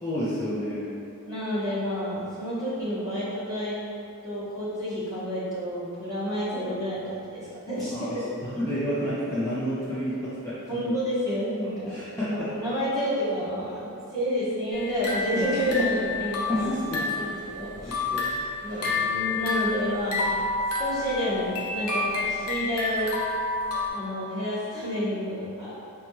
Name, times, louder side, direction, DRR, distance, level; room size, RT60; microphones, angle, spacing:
voice 1, 0.0-0.9 7.9-8.1 8.6-10.9 11.9-12.5 16.5-17.0 17.8-18.2 18.6-18.8, equal, 15° left, -12 dB, 0.5 m, -30 dB
voice 2, 1.2-3.8 4.2-8.2 10.7-12.0 12.3-16.7 17.0-18.0 18.6-20.3 20.8-23.1 23.9-25.7, equal, 15° right, -11 dB, 1.0 m, -29 dB
sound 1, 14.7-17.3 17.7-23.9, left 3 dB, 80° left, 0.6 m, -29 dB
4.1 x 2.3 x 3.0 m, 2.6 s
head